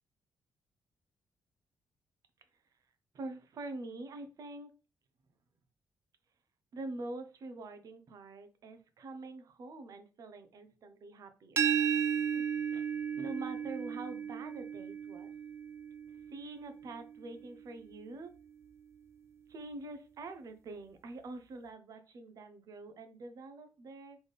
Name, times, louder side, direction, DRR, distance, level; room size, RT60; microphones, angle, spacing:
voice 1, 3.1-4.7 6.7-11.8 12.3-12.4 12.7-12.9 13.2-15.3 16.3-18.3 19.5-24.2, right 2 dB, 55° right, 8 dB, 0.8 m, -45 dB
sound 1, 11.6-17.3, right 8 dB, 40° right, 0.4 m, -34 dB
4.1 x 3.5 x 3.5 m, 0.32 s
cardioid pair, 135°, 7 cm